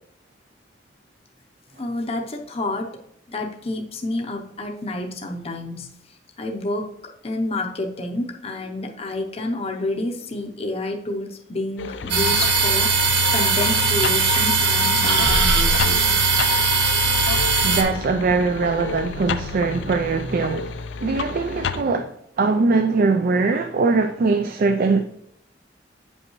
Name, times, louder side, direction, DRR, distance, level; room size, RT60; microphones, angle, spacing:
voice 1, 1.8-2.9 3.3-5.9 6.4-16.2, left 2 dB, 35° left, 0.6 m, -29 dB
sound 1, 11.8-21.8, left 5 dB, 85° left, 0.4 m, -31 dB
sound 2, 12.1-17.8, right 3 dB, 70° right, 1.1 m, -19 dB
voice 2, 17.6-25.1, right 4 dB, 50° right, 0.4 m, -21 dB
8.2 x 5.3 x 3.0 m
head